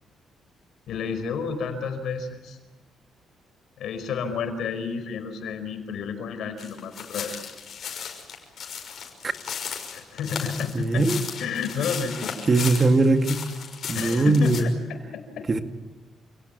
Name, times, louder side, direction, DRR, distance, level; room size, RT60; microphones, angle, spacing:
voice 1, 0.9-2.6 3.8-7.3 9.9-11.1 11.4-12.3 13.9-15.6, left 6 dB, 75° left, 8 dB, 5.1 m, -31 dB
sound 1, 6.6-14.6, left 7 dB, 60° left, 6.0 m, -35 dB
voice 2, 10.7-11.2 12.5-13.4 13.9-14.7 15.5-15.6, right 2 dB, 30° right, 6 dB, 2.1 m, -20 dB
28.5 x 18.0 x 9.3 m, 1.2 s
cardioid pair, 90°, 0 cm